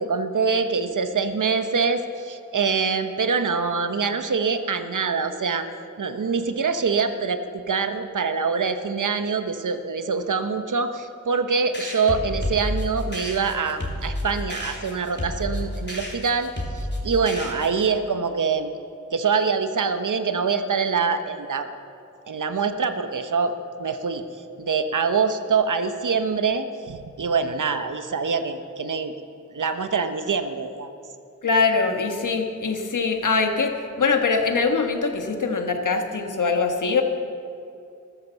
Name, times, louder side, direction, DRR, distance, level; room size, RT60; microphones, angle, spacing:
voice 1, 0.0-5.7 6.0-18.7 19.1-21.7 22.3-23.5 23.8-24.2 24.6-29.1 29.5-30.9, right 5 dB, 80° right, 9 dB, 1.0 m, -24 dB
sound 1, 11.7-17.9, left 1 dB, 35° left, 3.0 m, -31 dB
voice 2, 31.4-37.0, left 4 dB, 85° left, 5 dB, 1.5 m, -23 dB
13.5 x 13.5 x 7.0 m, 2.5 s
cardioid pair, 50°, 30 cm